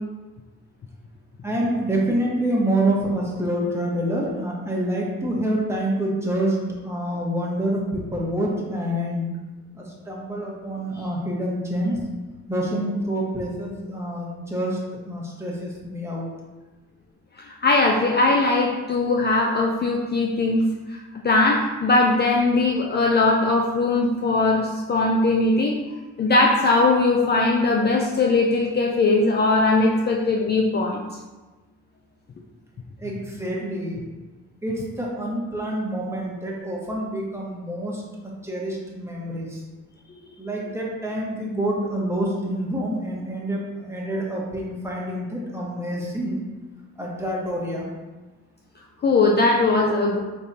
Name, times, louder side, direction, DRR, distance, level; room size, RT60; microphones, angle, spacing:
voice 1, 1.4-6.6 6.8-9.3 9.7-12.0 12.5-16.3 33.0-34.0 34.6-39.6 40.4-46.4 47.0-47.9, right 1 dB, 10° right, -4 dB, 1.2 m, -27 dB
voice 2, 17.4-20.6 20.9-25.8 26.2-31.0 49.0-50.2, left 3 dB, 35° left, 0 dB, 0.5 m, -20 dB
4.9 x 3.5 x 2.8 m, 1.2 s
cardioid pair, 90°, 30 cm